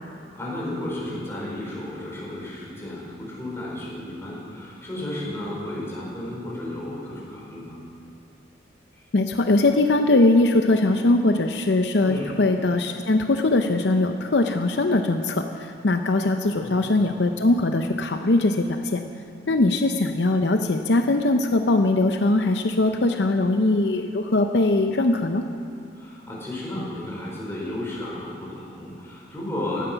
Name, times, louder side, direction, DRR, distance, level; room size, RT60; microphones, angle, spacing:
voice 1, 0.3-7.8 8.9-9.1 12.0-12.3 16.4-16.9 25.9-29.9, left 1 dB, 15° left, -6 dB, 4.6 m, -33 dB
voice 2, 9.1-19.0 19.5-25.4, left 2 dB, 70° left, 6 dB, 0.7 m, -21 dB
17.0 x 12.0 x 5.8 m, 2.6 s
head